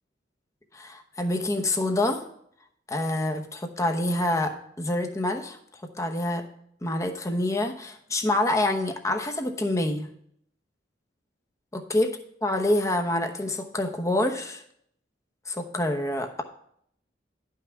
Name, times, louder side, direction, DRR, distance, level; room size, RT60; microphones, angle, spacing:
voice 1, 0.7-2.2 2.9-6.4 6.8-10.1 11.7-12.1 12.4-14.6 15.5-16.4, left 1 dB, 15° left, 4 dB, 0.9 m, -27 dB
11.0 x 5.7 x 4.6 m, 0.67 s
head